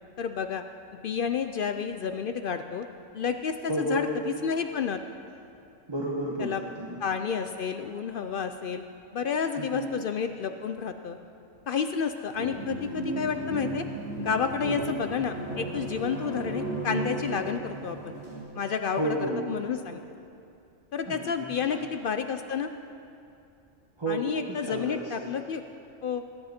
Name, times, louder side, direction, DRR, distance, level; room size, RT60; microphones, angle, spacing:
voice 1, 0.2-0.6 0.9-2.9 3.1-5.0 6.4-6.6 7.0-8.8 9.1-11.2 11.7-13.8 14.2-18.2 18.5-19.2 19.5-20.0 20.9-22.7 24.1-25.6 26.0-26.2, left 6 dB, 65° left, 8 dB, 0.5 m, -30 dB
voice 2, 3.7-4.1 5.9-7.0 9.6-9.9 14.6-14.9 19.0-19.5 21.0-21.9 24.0-25.3, right 1 dB, 20° right, -3 dB, 1.1 m, -32 dB
sound 1, 12.3-18.4, right 2 dB, 75° right, 4.1 m, -35 dB
20.5 x 10.0 x 4.3 m, 2.6 s
omnidirectional pair, 1.4 m